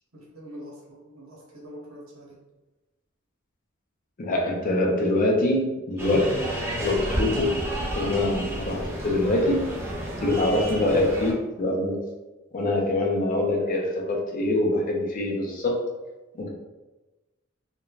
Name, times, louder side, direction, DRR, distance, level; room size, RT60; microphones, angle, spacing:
voice 1, 0.1-2.4, equal, 90° right, -3 dB, 0.9 m, -44 dB
voice 2, 4.2-6.3 6.8-7.6 7.9-9.7 10.2-12.0 12.5-15.8 16.4-16.5, left 1 dB, 40° left, 0 dB, 0.4 m, -24 dB
sound 1, 6.0-11.3, right 1 dB, 10° right, 0.5 m, -31 dB
3.1 x 2.2 x 2.3 m, 1.1 s
head